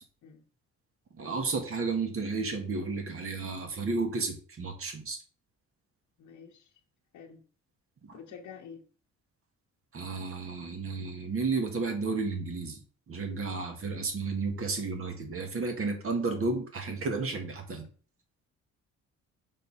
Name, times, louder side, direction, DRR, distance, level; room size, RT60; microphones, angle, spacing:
voice 1, 1.2-5.2 8.0-8.2 9.9-12.8 13.1-17.9, right 3 dB, 45° right, 1.7 m, -32 dB
voice 2, 6.2-6.7 7.1-7.4 8.1-8.9, left 7 dB, 75° left, 0.9 m, -48 dB
5.6 x 4.1 x 4.2 m
cardioid pair, 90°, 30 cm